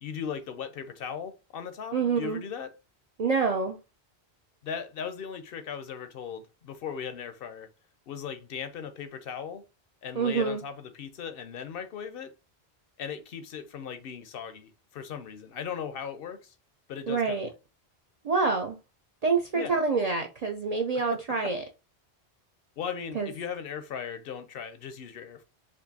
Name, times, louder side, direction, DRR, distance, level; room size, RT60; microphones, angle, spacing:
voice 1, 0.0-2.7 4.6-7.7 8.1-9.6 10.0-12.3 13.0-16.5 16.9-17.5 19.5-19.8 21.1-21.5 22.8-25.4, left 7 dB, 65° left, 0.7 m, -38 dB
voice 2, 1.9-2.4 3.2-3.8 10.2-10.6 17.1-17.5 18.2-18.8 19.2-21.6 23.1-23.3, right 4 dB, 50° right, 0.5 m, -27 dB
4.4 x 2.5 x 2.7 m
omnidirectional pair, 1.1 m